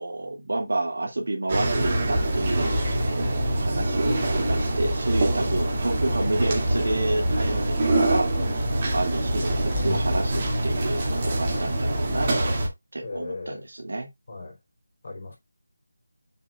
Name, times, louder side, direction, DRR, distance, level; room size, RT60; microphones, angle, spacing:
voice 1, 0.0-12.3 12.9-14.1, right 2 dB, 65° right, 2.2 m, -29 dB
sound 1, 1.5-12.7, right 1 dB, 25° right, 2.5 m, -25 dB
voice 2, 11.2-11.7 13.0-13.7 14.3-14.6 15.0-15.4, left 3 dB, 40° left, 4.1 m, -37 dB
7.2 x 6.7 x 2.5 m
figure-of-eight pair, 175°, 0 cm